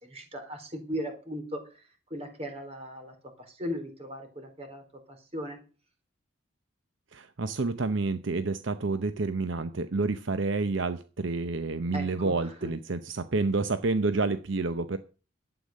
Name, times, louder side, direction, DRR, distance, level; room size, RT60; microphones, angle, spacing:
voice 1, 0.0-1.6 2.1-3.1 3.5-4.8 5.1-5.6 11.9-12.3 12.6-12.7, equal, 30° right, 5 dB, 3.8 m, -37 dB
voice 2, 7.1-15.0, right 3 dB, 65° right, 11 dB, 0.8 m, -29 dB
12.0 x 9.1 x 6.4 m, 0.35 s
head